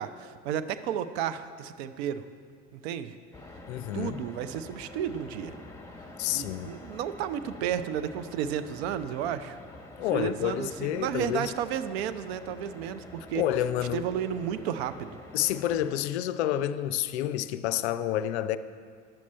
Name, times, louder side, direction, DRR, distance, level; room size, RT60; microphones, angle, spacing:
voice 1, 0.0-2.2 2.7-3.2 3.9-5.6 6.3-9.6 10.1-13.4 13.8-15.2, right 9 dB, 60° right, 0.6 m, -32 dB
sound 1, 3.3-16.0, left 2 dB, 10° left, 0.9 m, -47 dB
voice 2, 3.7-4.2 6.2-6.7 10.0-11.5 13.3-14.1 15.3-18.6, left 12 dB, 65° left, 0.5 m, -29 dB
10.5 x 7.2 x 4.3 m
figure-of-eight pair, 70°, 36 cm